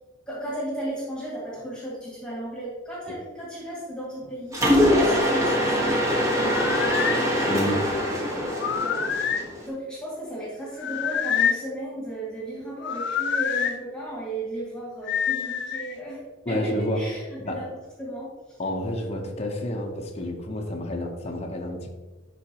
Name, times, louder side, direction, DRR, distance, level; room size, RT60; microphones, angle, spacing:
voice 1, 0.3-4.7 5.0-7.3 8.8-9.2 9.6-16.2 16.5-17.7 18.0-18.6, right 1 dB, 5° left, -6 dB, 2.0 m, -35 dB
Mechanisms, 4.5-9.6, equal, 15° right, 1.4 m, -23 dB
sound 1, 6.4-7.2 8.5-9.5 10.8-11.6 12.8-13.7 15.1-15.9, left 7 dB, 60° left, 0.5 m, -26 dB
voice 2, 7.5-7.9 16.5-17.7 18.6-21.9, left 1 dB, 30° left, 1 dB, 0.8 m, -30 dB
11.5 x 4.2 x 2.9 m, 1.2 s
head